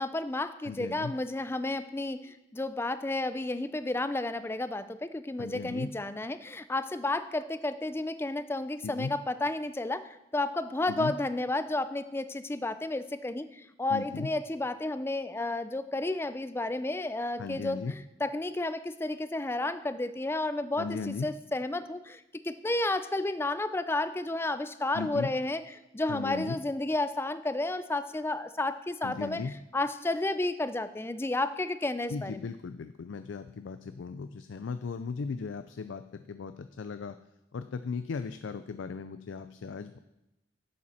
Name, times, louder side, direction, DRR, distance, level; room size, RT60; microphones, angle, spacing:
voice 1, 0.0-17.8 18.2-25.6 25.9-29.4 29.7-32.4, left 2 dB, 15° left, 12 dB, 0.4 m, -32 dB
voice 2, 0.6-1.1 5.4-5.9 8.8-9.1 10.9-11.1 13.9-14.3 17.4-17.9 20.8-21.3 24.9-25.3 26.1-26.6 29.0-29.5 32.1-37.1 37.5-40.0, left 4 dB, 85° left, 10 dB, 0.4 m, -37 dB
11.0 x 7.6 x 4.2 m, 0.91 s
head